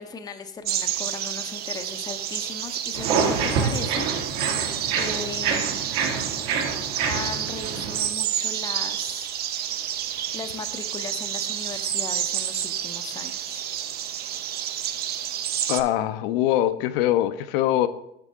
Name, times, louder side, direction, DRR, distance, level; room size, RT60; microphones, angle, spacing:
voice 1, 0.0-4.1 4.9-5.7 7.0-9.3 10.0-13.6, left 4 dB, 15° left, 7 dB, 0.6 m, -37 dB
sound 1, 0.6-15.8, right 10 dB, 35° right, 0.5 m, -29 dB
sound 2, 2.9-8.0, right 5 dB, 60° right, 2.0 m, -27 dB
voice 2, 15.7-17.9, left 13 dB, 65° left, 11 dB, 0.6 m, -23 dB
8.3 x 6.6 x 3.6 m, 0.80 s
supercardioid pair, 125°, 30 cm